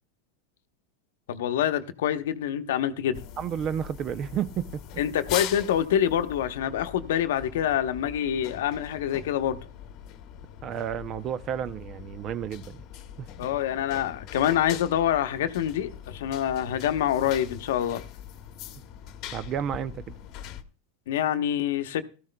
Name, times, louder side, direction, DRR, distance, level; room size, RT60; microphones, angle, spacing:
voice 1, 1.3-3.2 5.0-9.6 13.4-18.0 21.1-22.0, left 10 dB, 75° left, 0.9 m, -26 dB
sound 1, 3.1-20.6, left 11 dB, 50° left, 1.0 m, -42 dB
voice 2, 3.4-4.8 10.6-12.8 13.2-13.3 19.3-20.1, right 9 dB, 35° right, 0.5 m, -31 dB
17.0 x 13.5 x 2.2 m
supercardioid pair, 120°, 0 cm